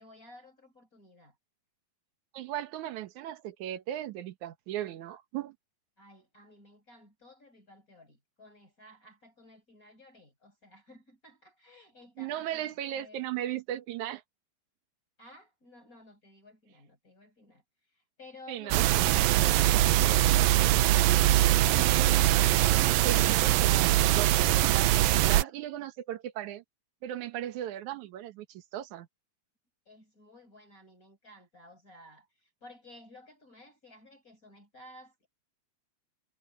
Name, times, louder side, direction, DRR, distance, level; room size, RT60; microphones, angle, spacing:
voice 1, 0.0-1.4 6.0-13.3 15.2-17.6 17.9-21.0 29.9-35.3, left 1 dB, 20° left, 5.7 m, -55 dB
voice 2, 2.3-5.6 12.2-14.2 18.5-18.9 21.7-22.5 23.0-26.6 27.0-29.1, right 12 dB, 65° right, 2.3 m, -37 dB
sound 1, 18.7-25.4, right 14 dB, 80° right, 2.4 m, -22 dB
omnidirectional pair, 4.3 m